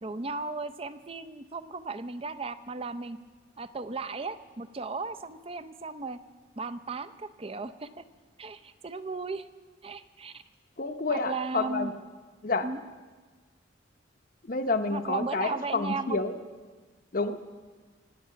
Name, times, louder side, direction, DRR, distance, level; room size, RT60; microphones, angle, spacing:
voice 1, 0.0-3.2 3.6-6.2 6.6-8.0 8.4-9.5 9.8-10.4 11.1-11.9 12.6-12.8 14.9-16.2, right 3 dB, 30° right, 12 dB, 0.6 m, -36 dB
voice 2, 10.8-11.9 12.4-12.7 14.4-16.3 17.1-17.5, left 3 dB, 50° left, 9 dB, 0.9 m, -29 dB
25.5 x 8.7 x 5.7 m, 1.4 s
head